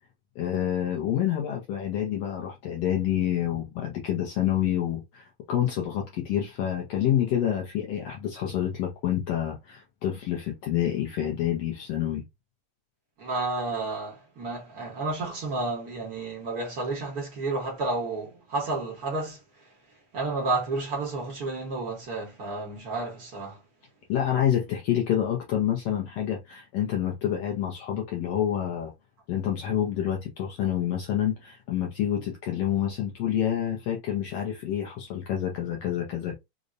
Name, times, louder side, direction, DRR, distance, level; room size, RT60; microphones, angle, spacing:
voice 1, 0.4-12.2 24.1-28.9 29.3-36.3, left 10 dB, 75° left, 1.5 m, -28 dB
voice 2, 13.2-19.4 20.1-23.6, right 3 dB, 70° right, 0.9 m, -31 dB
4.9 x 2.1 x 2.5 m
omnidirectional pair, 3.4 m